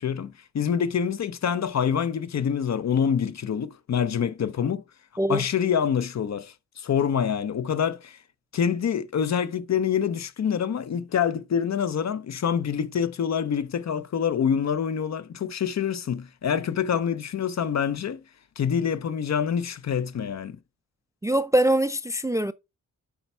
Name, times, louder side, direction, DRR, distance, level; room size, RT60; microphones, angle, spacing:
voice 1, 0.0-4.8 5.3-8.2 8.5-18.2 18.6-20.6, left 7 dB, 55° left, 0.6 m, -26 dB
voice 2, 21.2-22.5, right 1 dB, 10° right, 0.3 m, -23 dB
8.6 x 3.4 x 4.2 m
cardioid pair, 95°, 33 cm